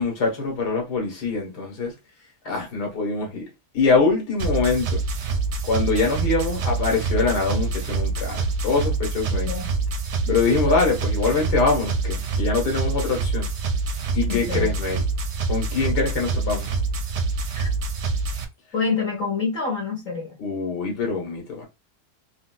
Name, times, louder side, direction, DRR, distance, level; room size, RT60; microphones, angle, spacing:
voice 1, 0.0-1.9 2.5-3.4 3.7-5.0 5.6-9.5 10.3-13.5 14.1-15.0 15.5-16.7 20.4-21.7, left 4 dB, 85° left, 1.8 m, -24 dB
sound 1, 4.4-18.4, right 3 dB, 60° right, 0.7 m, -26 dB
voice 2, 14.2-14.7 17.5-17.7 18.7-20.3, left 5 dB, 55° left, 1.5 m, -27 dB
3.9 x 2.4 x 2.2 m
omnidirectional pair, 1.7 m